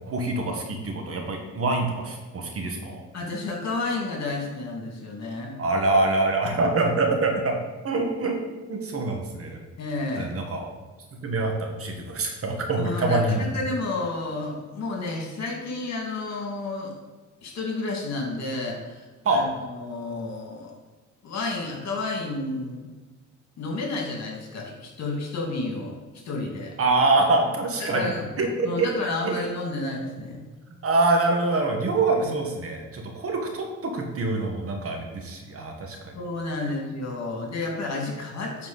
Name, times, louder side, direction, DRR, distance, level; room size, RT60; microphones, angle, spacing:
voice 1, 0.1-3.0 5.6-7.6 7.8-8.4 8.7-9.6 10.2-10.7 11.2-13.5 19.2-19.4 26.8-28.9 29.2-29.3 30.8-36.1, right 2 dB, 50° right, 3 dB, 1.4 m, -25 dB
voice 2, 3.1-5.6 9.8-10.4 12.8-16.9 17.4-20.7 21.2-22.9 23.6-25.9 26.2-26.8 27.8-28.3 28.6-30.4 32.2-32.3 36.1-38.7, left 2 dB, 60° left, 0 dB, 2.1 m, -31 dB
9.5 x 4.3 x 4.0 m, 1.3 s
cardioid pair, 90°, 30 cm